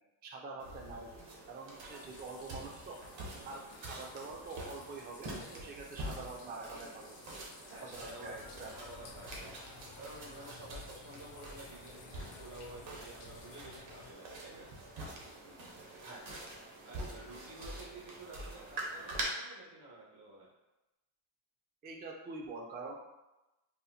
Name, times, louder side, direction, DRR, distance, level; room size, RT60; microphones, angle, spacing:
voice 1, 0.2-3.0 3.4-7.2 7.8-8.7 16.0-16.3 21.8-22.9, right 3 dB, 20° right, 0 dB, 0.3 m, -46 dB
sound 1, 0.6-19.2, right 1 dB, 65° right, 0.9 m, -46 dB
sound 2, 1.8-13.6, left 4 dB, 80° left, 0.8 m, -59 dB
voice 2, 3.3-4.0 7.4-8.4 8.7-14.7 16.8-20.5, right 2 dB, 85° right, -6 dB, 1.5 m, -51 dB
sound 3, 7.9-14.1, left 4 dB, 45° left, 0.5 m, -55 dB
4.1 x 2.1 x 2.7 m, 1.0 s
cardioid pair, 105°, 49 cm